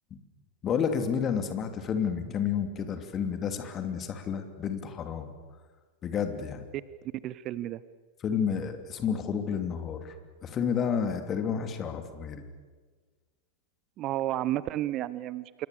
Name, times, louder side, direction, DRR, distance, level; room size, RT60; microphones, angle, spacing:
voice 1, 0.6-5.3 6.0-6.7 8.2-10.1 10.4-12.4, left 7 dB, 30° left, 7 dB, 2.8 m, -30 dB
voice 2, 7.2-7.8 14.0-15.7, right 14 dB, 35° right, 17 dB, 0.7 m, -31 dB
27.0 x 23.0 x 7.0 m, 1.5 s
figure-of-eight pair, 90°, 0 cm